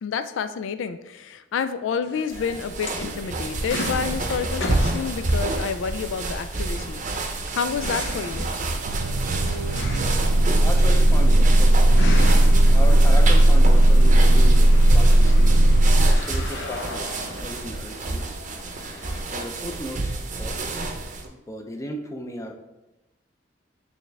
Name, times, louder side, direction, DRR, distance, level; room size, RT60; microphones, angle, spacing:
voice 1, 0.0-7.0 7.5-8.5, left 6 dB, 80° left, 11 dB, 0.3 m, -29 dB
sound 1, 2.0-19.5, left 2 dB, 65° left, 0.8 m, -38 dB
sound 2, 2.3-21.3, right 2 dB, 40° right, 0.7 m, -29 dB
sound 3, 8.9-16.1, right 1 dB, 80° right, 0.4 m, -16 dB
voice 2, 10.6-11.8 12.7-15.6 16.1-18.3 19.3-20.7 21.5-22.5, equal, 15° left, 4 dB, 0.5 m, -35 dB
8.4 x 3.4 x 3.4 m, 0.99 s
head